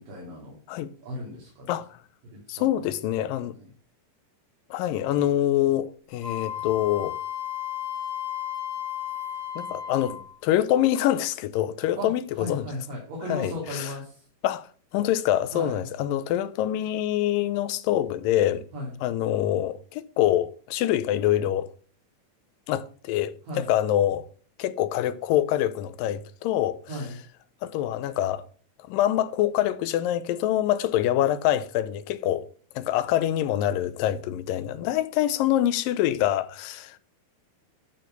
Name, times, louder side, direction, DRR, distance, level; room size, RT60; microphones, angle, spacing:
voice 1, 0.0-0.6 1.0-1.8 2.2-2.9 3.6-3.7 12.0-14.2 15.5-15.8 18.7-18.9 23.5-23.7 26.9-27.2, left 1 dB, 75° right, 4.3 m, -36 dB
voice 2, 1.7-2.0 2.5-3.6 4.7-7.2 9.6-12.7 13.3-13.9 14.4-14.7 14.9-18.7 19.0-21.7 22.7-24.3 24.6-26.8 27.6-28.4 28.8-32.5 32.8-37.0, left 12 dB, 85° left, 2.4 m, -25 dB
Wind instrument woodwind instrument, 6.2-10.4, left 10 dB, 15° right, 1.4 m, -33 dB
12.0 x 4.6 x 6.6 m
omnidirectional pair, 3.9 m